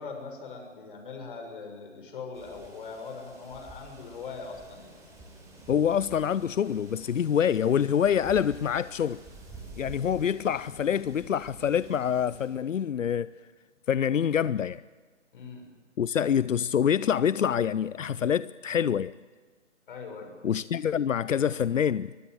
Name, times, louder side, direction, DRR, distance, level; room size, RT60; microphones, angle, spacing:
voice 1, 0.0-4.9 15.3-15.7 19.9-20.3, left 4 dB, 45° left, 6.3 m, -41 dB
sound 1, 2.3-12.5, right 2 dB, 10° right, 4.2 m, -49 dB
voice 2, 5.7-9.2 9.8-13.3 13.9-14.8 16.0-19.1 20.4-22.1, left 8 dB, 85° left, 0.6 m, -26 dB
24.0 x 20.0 x 7.9 m
figure-of-eight pair, 150°, 37 cm